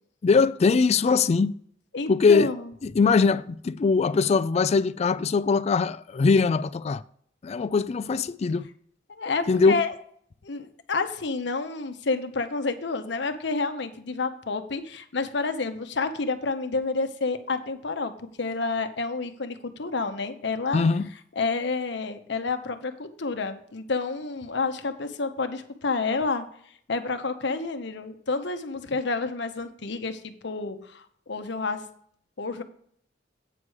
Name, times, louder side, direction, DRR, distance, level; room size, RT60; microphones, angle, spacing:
voice 1, 0.2-1.6 2.1-2.5 2.8-7.0 7.4-8.7 9.5-9.8 20.7-21.1, left 4 dB, 35° left, 0.3 m, -21 dB
voice 2, 1.9-2.7 9.1-9.9 10.4-18.1 18.4-20.8 21.4-26.4 26.9-31.9 32.4-32.6, left 3 dB, 65° left, 0.9 m, -29 dB
8.8 x 4.8 x 6.4 m
head